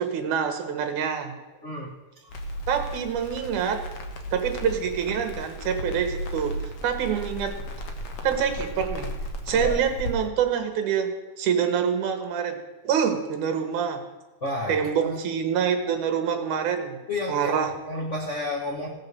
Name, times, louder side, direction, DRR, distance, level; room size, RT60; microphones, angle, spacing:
voice 1, 0.0-1.3 2.7-3.8 4.3-7.6 8.2-9.1 9.5-11.1 11.4-12.6 12.8-14.0 14.7-17.0 17.3-17.7, right 7 dB, 75° right, 7 dB, 2.6 m, -26 dB
voice 2, 1.6-1.9 2.2-2.4 9.5-9.7 14.4-15.2 16.4-16.5 17.1-18.9, left 1 dB, 90° left, -1 dB, 0.6 m, -31 dB
Crackle, 2.3-10.1, equal, 55° left, 1.9 m, -35 dB
16.5 x 5.7 x 6.7 m, 1.2 s
omnidirectional pair, 3.6 m